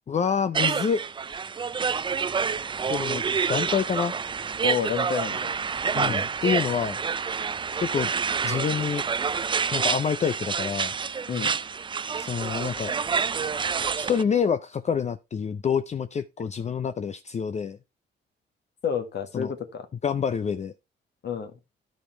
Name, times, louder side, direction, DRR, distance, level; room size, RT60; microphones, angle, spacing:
voice 1, 0.1-1.0 2.9-3.2 3.5-4.1 5.9-7.0 7.8-8.1 8.4-9.0 9.7-10.9 12.2-12.9 14.0-17.8 19.3-19.5 20.0-20.7, left 7 dB, 35° left, 0.5 m, -27 dB
sound 1, 0.5-14.2, right 6 dB, 25° right, 0.4 m, -28 dB
voice 2, 4.6-5.6 6.0-6.2 11.3-11.6 18.8-19.9 21.2-21.5, left 7 dB, 60° left, 1.8 m, -29 dB
11.5 x 5.2 x 4.4 m
cardioid pair, 90°, 20 cm